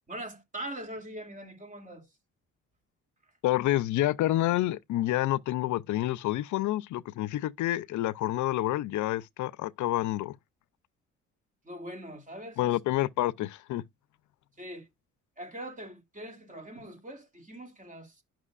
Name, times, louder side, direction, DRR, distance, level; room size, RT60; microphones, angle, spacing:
voice 1, 0.1-2.1 11.6-12.9 14.6-14.9 15.4-18.2, right 1 dB, 25° right, 2.7 m, -42 dB
voice 2, 3.4-10.4 12.6-13.8, left 15 dB, 75° left, 0.5 m, -28 dB
11.0 x 6.1 x 2.4 m
cardioid pair, 90°, 30 cm